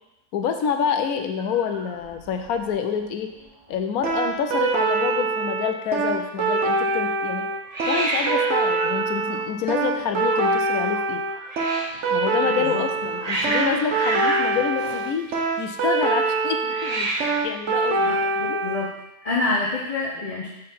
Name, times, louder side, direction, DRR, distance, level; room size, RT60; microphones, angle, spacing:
voice 1, 0.3-3.3 3.7-7.4 7.9-11.2 12.1-15.3 15.6-17.1 17.4-18.2 18.5-18.6, left 7 dB, 75° left, 6 dB, 1.1 m, -27 dB
Hiss, 1.4-2.7 3.0-3.4 3.7-3.8 4.0-4.7 7.7-12.0 12.7-15.7 16.6-17.6, right 2 dB, 30° right, 0.8 m, -31 dB
sound 1, 4.0-18.9, right 3 dB, 55° right, 1.1 m, -24 dB
voice 2, 12.4-12.8 18.0-18.9 19.2-20.5, left 3 dB, 30° left, -6 dB, 0.7 m, -27 dB
5.3 x 4.4 x 5.4 m, 0.92 s
omnidirectional pair, 1.6 m